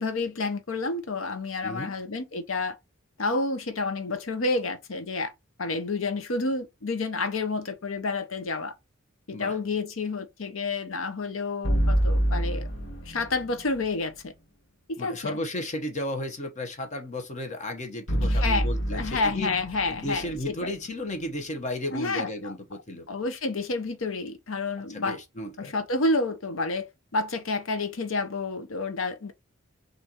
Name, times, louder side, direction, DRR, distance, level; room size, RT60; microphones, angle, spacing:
voice 1, 0.0-2.8 3.2-5.3 5.6-8.7 9.3-12.7 13.1-14.3 14.9-15.4 18.2-20.7 21.9-22.5 23.1-25.2 25.6-26.9 27.1-29.3, left 3 dB, 80° left, 0.8 m, -29 dB
voice 2, 1.6-1.9 9.3-9.6 15.0-19.5 19.9-23.1 24.9-25.7, left 1 dB, 35° left, 1.0 m, -34 dB
sound 1, 11.6-13.8 18.1-21.3, right 1 dB, 60° left, 1.5 m, -27 dB
6.3 x 2.6 x 2.9 m
head